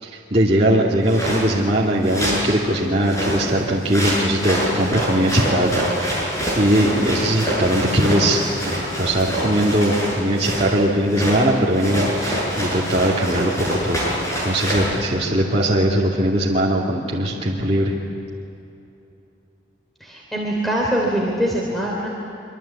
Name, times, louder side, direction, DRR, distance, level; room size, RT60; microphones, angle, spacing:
voice 1, 0.0-14.2 14.4-17.9, right 1 dB, 35° right, -5 dB, 2.6 m, -20 dB
sound 1, 1.1-1.5 2.0-2.5 3.0-10.7 11.1-11.4 11.7-14.9, equal, 15° left, 7.6 m, -25 dB
voice 2, 20.0-22.1, right 1 dB, ahead, -3 dB, 3.1 m, -23 dB
25.5 x 25.0 x 8.6 m, 2.8 s
head